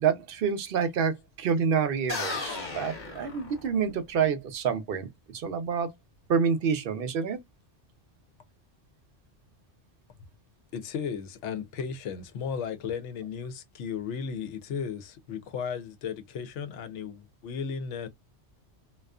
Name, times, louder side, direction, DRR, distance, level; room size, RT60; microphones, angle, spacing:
voice 1, 0.0-5.9 6.3-7.4, right 6 dB, 60° right, 0.7 m, -28 dB
sound 1, 2.1-4.0, left 3 dB, 45° left, 1.0 m, -35 dB
voice 2, 10.7-18.1, left 6 dB, 80° left, 0.9 m, -35 dB
2.4 x 2.3 x 2.3 m
omnidirectional pair, 1.2 m